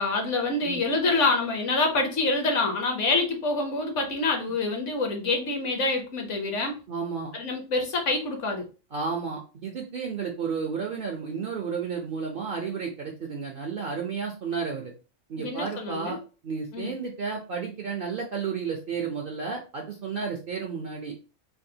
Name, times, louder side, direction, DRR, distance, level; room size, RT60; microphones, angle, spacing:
voice 1, 0.0-6.8 7.3-8.7 15.4-16.2 16.7-16.9, left 3 dB, 65° left, 3 dB, 1.1 m, -26 dB
voice 2, 6.9-7.3 8.9-14.9 15.3-16.2 16.4-21.1, right 5 dB, 60° right, 1 dB, 0.6 m, -32 dB
3.5 x 2.3 x 2.7 m, 0.34 s
omnidirectional pair, 1.4 m